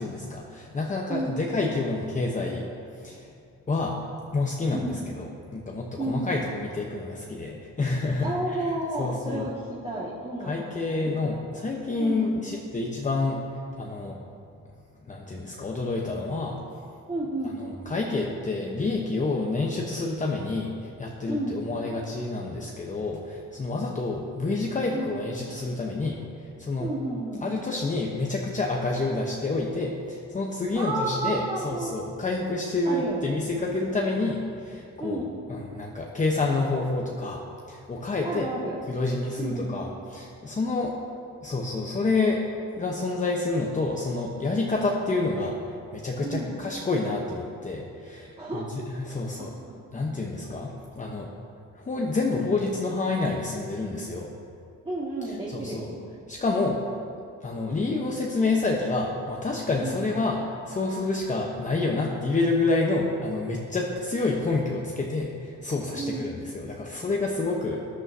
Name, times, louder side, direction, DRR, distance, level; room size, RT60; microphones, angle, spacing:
voice 1, 0.0-2.6 2.9-3.3 3.7-4.0 4.3-8.6 9.0-9.5 10.4-13.4 13.8-14.2 15.1-16.6 17.9-26.9 27.4-35.2 35.5-37.4 37.7-38.5 38.9-40.9 41.4-42.4 42.8-49.5 49.9-51.3 51.7-54.3 55.5-55.9 56.3-56.8 57.4-67.8, left 3 dB, 25° left, -1 dB, 0.9 m, -28 dB
voice 2, 1.1-1.4 4.7-5.0 6.0-6.3 8.2-11.1 12.0-12.5 17.1-17.6 21.3-21.6 24.9-25.1 26.8-27.4 30.7-31.9 32.8-33.4 35.0-35.4 38.2-38.8 39.4-39.7 46.2-46.6 48.4-48.6 54.8-56.1 56.5-56.8 59.8-60.0 65.9-66.3, right 2 dB, 20° right, -7 dB, 1.9 m, -31 dB
13.5 x 10.0 x 2.8 m, 2.5 s
cardioid pair, 90°, 30 cm